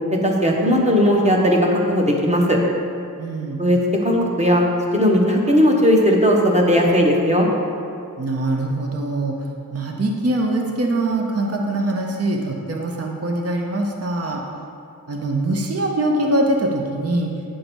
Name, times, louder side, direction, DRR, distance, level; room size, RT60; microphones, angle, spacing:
voice 1, 0.2-2.6 3.6-4.6 4.9-7.5, equal, 20° right, -1 dB, 1.2 m, -17 dB
voice 2, 3.2-3.6 8.2-9.4 9.7-14.4 15.1-17.3, right 1 dB, 40° right, 1 dB, 0.9 m, -23 dB
10.0 x 3.8 x 7.0 m, 2.5 s
wide cardioid pair, 125°, 37 cm